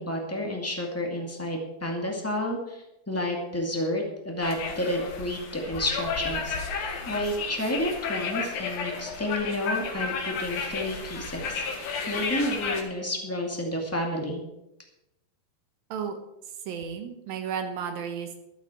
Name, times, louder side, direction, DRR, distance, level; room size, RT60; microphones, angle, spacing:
voice 1, 0.0-14.4, left 1 dB, 5° left, 0 dB, 1.3 m, -31 dB
sound 1, 4.4-12.8, left 5 dB, 70° left, 3.6 m, -32 dB
voice 2, 16.7-18.4, right 7 dB, 70° right, 6 dB, 3.1 m, -33 dB
14.0 x 12.0 x 4.5 m, 0.89 s
omnidirectional pair, 4.3 m